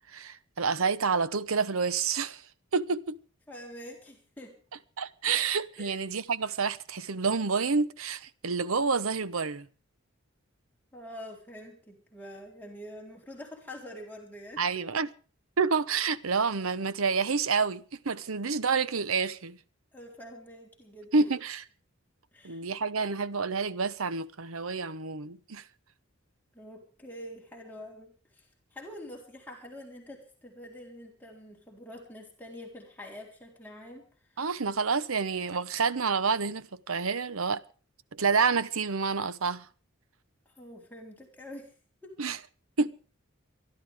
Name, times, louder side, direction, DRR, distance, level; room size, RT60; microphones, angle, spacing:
voice 1, 0.1-2.4 2.7-3.1 5.0-9.7 14.6-15.1 15.6-19.6 21.1-21.6 22.4-25.6 34.4-37.6 38.1-39.7 42.2-42.4 42.8-43.2, right 5 dB, 85° right, 0.9 m, -28 dB
voice 2, 3.5-4.6 5.8-6.0 10.9-14.6 19.9-21.1 22.3-22.6 26.5-34.4 40.5-41.7 42.0-42.2, left 1 dB, 10° left, 3.9 m, -46 dB
24.0 x 12.5 x 3.6 m
head